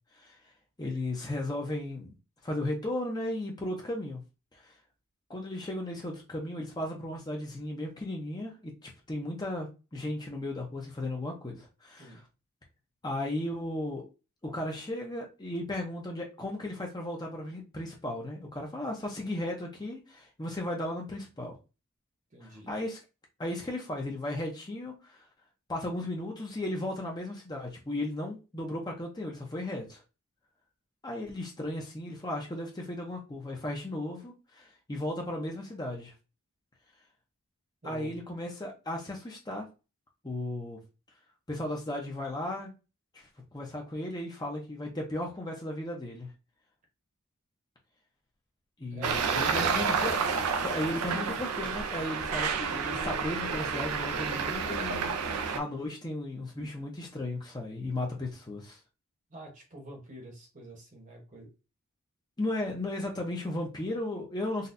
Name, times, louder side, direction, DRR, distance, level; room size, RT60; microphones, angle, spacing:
voice 1, 0.8-2.1 2.4-4.2 4.6-4.7 5.3-12.2 13.0-14.0 14.4-21.6 22.4-23.0 23.4-25.2 25.7-30.0 31.0-36.1 37.8-39.7 40.2-40.8 41.5-42.7 43.1-46.3 48.8-50.2 50.6-58.8 62.4-64.7, left 1 dB, 20° left, 0.6 m, -35 dB
voice 2, 22.3-22.7 37.8-38.2 48.9-49.2 49.4-49.8 59.3-61.5, right 1 dB, 35° right, 1.0 m, -45 dB
Traffic noise roadway noise, 49.0-55.6, right 5 dB, 90° right, 0.5 m, -30 dB
4.0 x 2.3 x 2.6 m
head